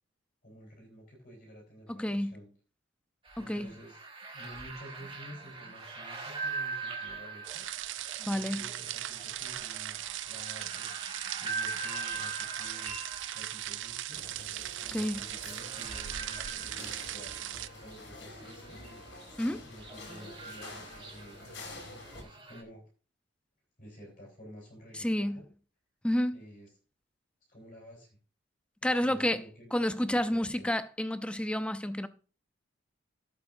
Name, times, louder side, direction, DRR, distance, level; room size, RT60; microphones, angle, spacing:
voice 1, 0.4-2.5 3.4-4.0 4.3-7.6 8.3-13.0 13.3-14.2 14.8-18.8 19.6-21.4 22.2-22.8 23.8-25.5 26.3-26.7 27.5-28.2 28.8-29.7 30.0-30.7, equal, 45° left, 4.0 m, -51 dB
voice 2, 1.9-2.4 3.4-3.7 8.2-8.6 14.9-15.2 19.4-19.7 24.9-25.4 26.0-26.4 28.8-29.4 29.7-32.1, left 1 dB, 5° left, 0.5 m, -30 dB
sound 1, 3.2-22.6, right 4 dB, 25° right, 2.1 m, -43 dB
sound 2, 7.4-17.7, right 14 dB, 70° right, 0.4 m, -39 dB
sound 3, 14.1-22.2, left 2 dB, 70° left, 3.4 m, -48 dB
16.0 x 8.3 x 2.6 m
head